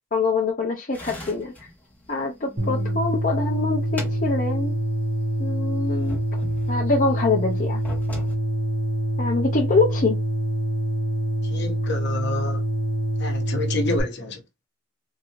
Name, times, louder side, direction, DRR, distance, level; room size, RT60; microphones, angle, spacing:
voice 1, 0.1-1.7 2.1-4.7 5.4-6.2 6.7-7.8 9.2-10.2, left 3 dB, 40° left, 0.7 m, -24 dB
sound 1, 0.9-3.0 3.5-4.9 5.2-5.3 5.8-7.0 7.6-8.4, left 1 dB, 10° left, 1.2 m, -40 dB
sound 2, 2.6-14.0, right 1 dB, 80° right, 1.3 m, -25 dB
voice 2, 11.4-12.6 13.2-14.4, left 2 dB, 55° left, 1.1 m, -29 dB
3.6 x 2.6 x 2.9 m
head